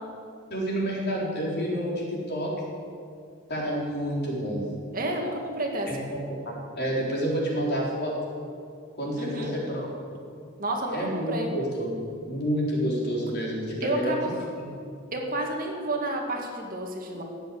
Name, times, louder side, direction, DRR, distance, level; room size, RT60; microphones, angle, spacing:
voice 1, 0.5-2.6 3.5-4.6 5.9-6.2 6.8-8.2 9.0-9.9 10.9-11.9 12.3-14.2 14.5-14.6, equal, 50° left, -3 dB, 4.1 m, -29 dB
voice 2, 4.9-5.9 9.2-9.6 10.6-11.5 13.8-14.3 15.1-17.2, right 1 dB, 45° right, 1 dB, 2.1 m, -30 dB
17.0 x 7.9 x 8.7 m, 2.4 s
head